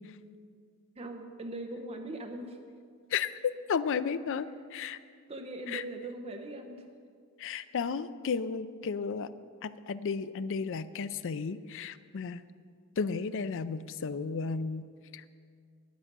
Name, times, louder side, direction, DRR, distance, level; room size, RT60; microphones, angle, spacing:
voice 1, 1.0-2.6 5.3-6.9, right 2 dB, 25° right, 4 dB, 0.8 m, -40 dB
voice 2, 3.7-5.0 5.7-5.8 7.4-9.3 9.6-12.4 13.0-14.9 15.1-15.2, left 5 dB, 60° left, 14 dB, 0.5 m, -33 dB
10.5 x 10.5 x 6.0 m, 2.2 s
head